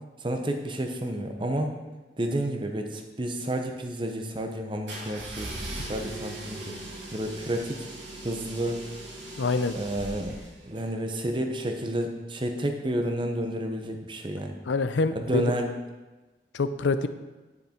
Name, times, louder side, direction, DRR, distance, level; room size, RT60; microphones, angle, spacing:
voice 1, 0.2-1.8 2.2-5.5 5.9-6.7 7.1-7.9 8.2-8.8 9.7-10.4 10.6-14.6 15.1-15.7, right 1 dB, 25° right, 4 dB, 0.9 m, -30 dB
sound 1, 4.9-10.8, right 1 dB, 90° right, 2.8 m, -39 dB
voice 2, 9.4-9.8 14.7-15.5 16.5-17.1, left 3 dB, 90° left, 11 dB, 0.6 m, -25 dB
9.9 x 6.7 x 4.4 m, 1.2 s
head